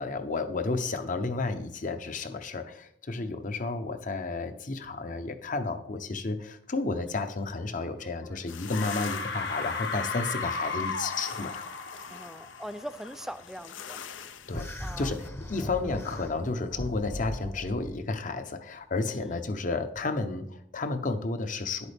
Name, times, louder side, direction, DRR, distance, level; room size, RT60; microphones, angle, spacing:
voice 1, 0.0-11.6 14.5-21.9, left 3 dB, 45° left, 9 dB, 0.7 m, -32 dB
sound 1, 8.0-8.4 8.7-13.3, left 4 dB, 65° left, 1.1 m, -35 dB
sound 2, 8.5-15.3, left 8 dB, 85° left, 0.6 m, -45 dB
voice 2, 12.1-14.0 14.8-15.1 15.8-16.0 19.1-19.3, equal, ahead, 13 dB, 0.3 m, -41 dB
sound 3, 14.5-17.9, equal, 15° left, 0.7 m, -38 dB
10.5 x 8.2 x 3.4 m, 0.72 s
head